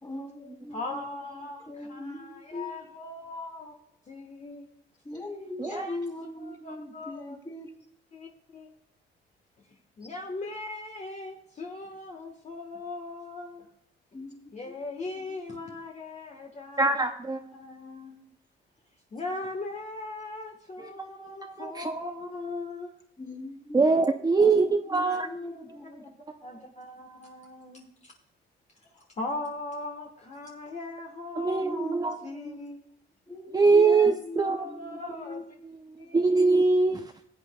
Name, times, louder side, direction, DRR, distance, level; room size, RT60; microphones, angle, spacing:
voice 1, 0.0-0.8 1.7-2.7 5.0-7.7 14.1-14.4 14.7-14.8 23.2-26.0 31.6-32.0 32.4-32.6 33.3-35.4, left 2 dB, 20° left, 2 dB, 3.2 m, -40 dB
voice 2, 0.7-3.7 4.1-4.7 5.6-6.1 6.4-7.4 8.1-8.7 10.0-13.7 14.5-17.0 17.4-18.1 19.1-22.9 23.7-24.0 24.3-24.5 25.0-25.2 26.4-28.1 28.9-32.8 33.8-35.4 36.0-36.3, left 2 dB, 35° left, 1 dB, 1.3 m, -39 dB
voice 3, 16.8-17.4 21.4-22.1 23.7-25.3 31.4-32.2 33.5-34.6 36.1-37.0, right 4 dB, 20° right, 5 dB, 0.6 m, -23 dB
16.0 x 8.4 x 2.2 m, 0.72 s
cardioid pair, 90°, 20 cm